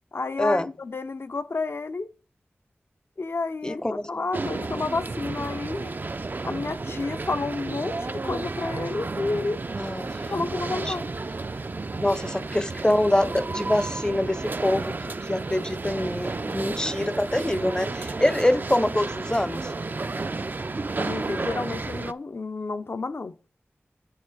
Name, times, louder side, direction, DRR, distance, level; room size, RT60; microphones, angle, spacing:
voice 1, 0.1-2.1 3.2-3.8 4.1-5.9 6.4-9.6 10.3-11.1 21.0-23.4, left 3 dB, 65° left, 0.6 m, -30 dB
voice 2, 3.6-4.2 9.7-10.3 10.6-11.0 12.0-19.7, left 1 dB, 15° left, 0.6 m, -25 dB
sound 1, 4.3-22.1, right 3 dB, 45° right, 0.4 m, -32 dB
8.8 x 6.5 x 3.9 m
wide cardioid pair, 50°, 4 cm